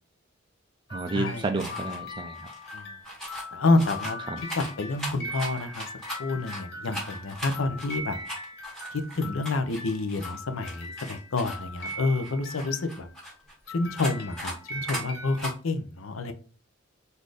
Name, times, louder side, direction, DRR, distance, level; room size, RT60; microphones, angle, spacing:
sound 1, 0.9-13.4 13.7-15.4, left 1 dB, 55° left, 1.5 m, -41 dB
voice 1, 0.9-2.5 4.3-4.4 6.9-7.0, right 3 dB, 25° right, 0.3 m, -31 dB
sound 2, 1.6-2.0 2.3-3.5 3.8-6.6 6.9-10.4 10.6-13.5 14.0-14.6 14.9-15.0 15.4-15.5, equal, 5° left, 1.6 m, -38 dB
voice 2, 3.2-5.9 6.2-8.2 8.9-13.1 13.7-16.3, left 3 dB, 90° left, 0.7 m, -28 dB
4.1 x 2.6 x 4.8 m
head